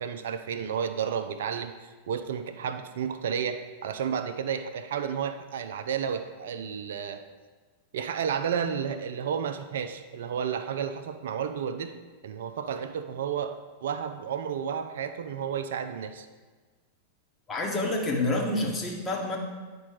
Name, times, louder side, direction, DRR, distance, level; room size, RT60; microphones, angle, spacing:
voice 1, 0.0-7.2 7.9-16.3, right 7 dB, 65° right, 8 dB, 0.5 m, -32 dB
voice 2, 17.5-19.4, left 2 dB, 20° left, 0 dB, 1.6 m, -28 dB
9.4 x 4.3 x 4.9 m, 1.4 s
figure-of-eight pair, 95°, 0 cm